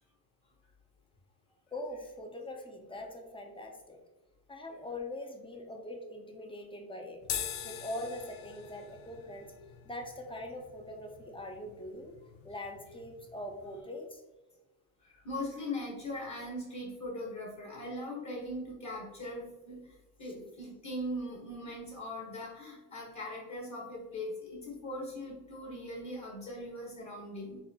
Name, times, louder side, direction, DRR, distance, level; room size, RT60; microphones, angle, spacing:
voice 1, 1.7-4.0 4.5-7.2 7.6-9.5 9.8-12.2 12.4-14.2, left 1 dB, 15° left, 3 dB, 0.5 m, -42 dB
sound 1, 7.2-13.8, left 9 dB, 80° left, 0.5 m, -44 dB
voice 2, 15.0-27.6, left 1 dB, 40° left, -2 dB, 1.2 m, -40 dB
4.0 x 2.1 x 2.8 m, 1.1 s
supercardioid pair, 80°, 43 cm